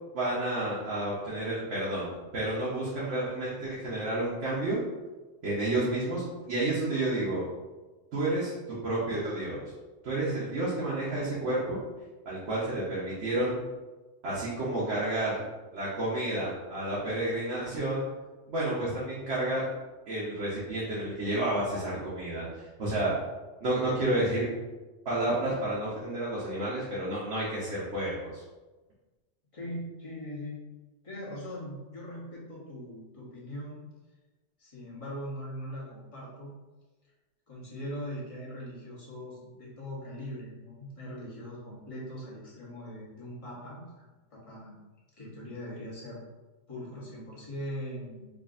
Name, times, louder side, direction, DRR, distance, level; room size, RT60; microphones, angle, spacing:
voice 1, 0.1-4.8 5.4-7.5 8.1-9.6 10.0-11.8 12.2-13.5 14.2-15.4 15.7-18.0 18.5-19.7 20.1-23.1 23.6-24.4 25.0-28.4, right 1 dB, 70° right, -8 dB, 1.2 m, -30 dB
voice 2, 29.5-30.7 31.0-33.8 34.6-36.5 37.5-44.1 44.3-44.8 45.2-46.2 46.7-48.3, equal, 30° left, -6 dB, 1.0 m, -41 dB
4.8 x 2.5 x 2.5 m, 1.2 s
omnidirectional pair, 1.3 m